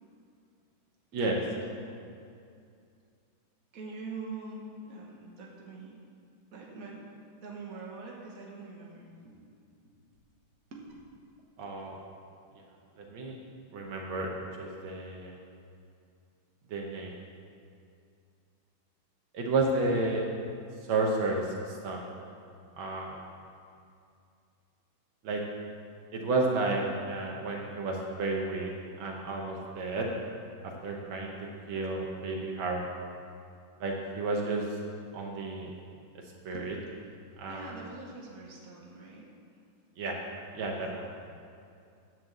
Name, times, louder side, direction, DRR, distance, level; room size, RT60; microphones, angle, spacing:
voice 1, 1.1-1.9 3.7-6.0 6.5-7.1 7.4-9.4 10.7-10.8 36.5-36.6 37.4-39.3, right 3 dB, 45° right, -2 dB, 1.7 m, -44 dB
voice 2, 11.6-12.0 13.0-13.4 13.7-14.3 14.6-15.4 16.7-17.1 19.3-20.2 20.9-22.1 22.8-23.2 25.2-25.4 26.1-28.7 29.0-30.1 30.6-31.3 31.7-32.9 33.8-34.7 35.1-35.7 36.4-36.8 37.4-37.7 40.0-40.2 40.5-41.1, right 2 dB, 80° right, 0 dB, 1.8 m, -31 dB
10.0 x 4.6 x 7.5 m, 2.4 s
omnidirectional pair, 2.1 m